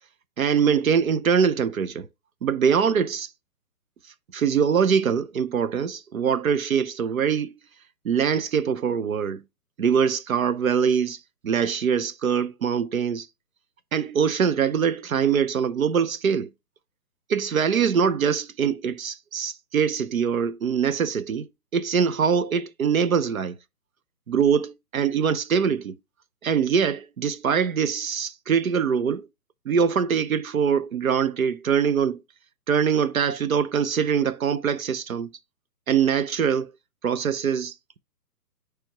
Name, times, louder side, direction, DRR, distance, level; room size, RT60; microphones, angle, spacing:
voice 1, 0.4-2.1 2.4-3.3 4.3-7.5 8.0-9.4 9.8-13.3 13.9-16.5 17.3-21.5 21.7-23.6 24.3-26.0 26.4-29.3 29.6-32.2 32.7-35.3 35.9-36.7 37.0-38.0, right 7 dB, 60° right, 0.7 m, -23 dB
10.0 x 3.5 x 2.9 m
hypercardioid pair, 175°, 48 cm